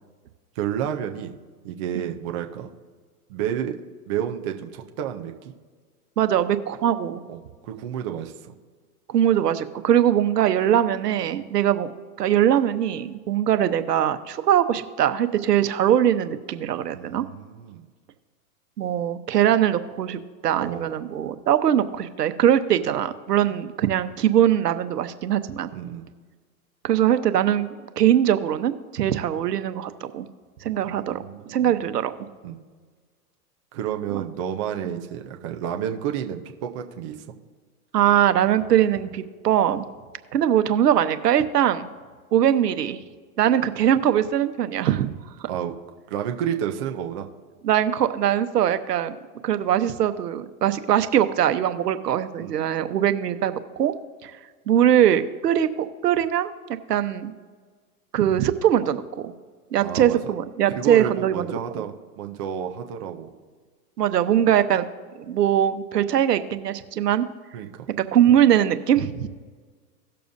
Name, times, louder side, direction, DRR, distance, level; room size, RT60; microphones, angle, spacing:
voice 1, 0.6-1.3 1.6-2.7 3.3-3.8 4.1-5.5 7.3-8.5 16.9-17.9 20.6-21.0 23.5-23.6 25.7-26.1 30.8-31.7 32.4-32.6 33.7-37.2 45.5-45.7 46.1-47.3 52.4-52.7 59.8-60.3 60.7-63.3 67.5-67.9, right 9 dB, 20° right, 4 dB, 0.4 m, -30 dB
voice 2, 6.2-7.2 9.1-11.9 12.2-17.2 18.8-25.7 26.8-30.3 30.6-31.2 31.5-32.1 37.9-39.9 40.3-41.9 42.3-43.0 43.4-45.2 47.6-49.2 49.4-53.9 54.2-54.3 54.7-56.5 56.9-57.3 58.1-59.3 59.7-61.5 64.0-64.9 65.3-67.3 68.0-69.3, right 10 dB, 85° right, 10 dB, 1.0 m, -21 dB
17.5 x 6.8 x 2.6 m, 1.5 s
hypercardioid pair, 140°, 47 cm